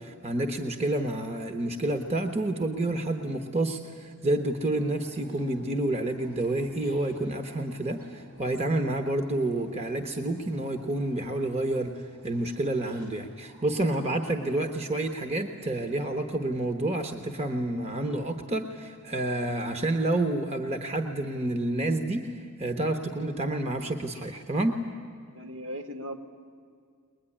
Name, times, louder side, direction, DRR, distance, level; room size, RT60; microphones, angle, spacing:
voice 1, 0.0-22.3 22.6-24.8, right 1 dB, 30° right, 6 dB, 1.1 m, -29 dB
sound 1, 4.4-17.3, right 1 dB, 90° right, 7.8 m, -56 dB
voice 2, 25.3-26.2, equal, 60° right, 5 dB, 1.9 m, -37 dB
22.0 x 20.5 x 10.0 m, 2.2 s
head